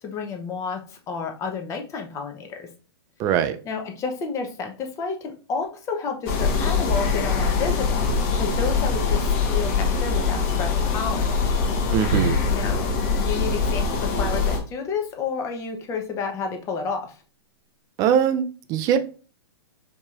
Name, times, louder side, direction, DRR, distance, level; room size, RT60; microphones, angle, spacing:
voice 1, 0.0-2.7 3.7-8.0 8.4-11.3 12.5-17.2, left 5 dB, 20° left, 0.6 m, -31 dB
voice 2, 3.2-3.6 11.9-12.4 18.0-19.0, right 9 dB, 25° right, 0.4 m, -21 dB
sound 1, 6.3-14.6, left 5 dB, 40° left, 1.0 m, -23 dB
sound 2, 12.1-14.6, right 1 dB, 70° right, 1.1 m, -31 dB
4.7 x 2.8 x 2.3 m
hypercardioid pair, 140°, 14 cm